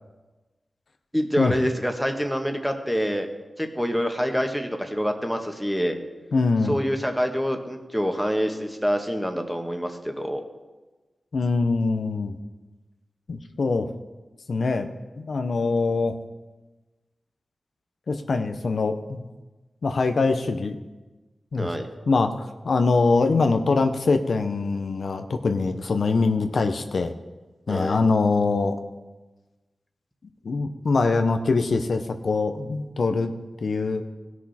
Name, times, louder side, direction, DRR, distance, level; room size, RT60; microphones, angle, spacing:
voice 1, 1.1-3.3 3.6-5.9 6.6-10.4 21.5-21.9 27.7-28.0, equal, ahead, 5 dB, 1.4 m, -26 dB
voice 2, 6.3-6.8 11.3-12.4 13.3-13.9 14.5-14.9 15.2-16.2 18.1-19.3 19.8-20.8 21.5-21.7 22.1-27.1 27.7-28.7 30.4-33.3 33.6-34.0, left 3 dB, 75° left, 7 dB, 0.7 m, -23 dB
17.0 x 6.3 x 4.2 m, 1.2 s
cardioid pair, 55°, 0 cm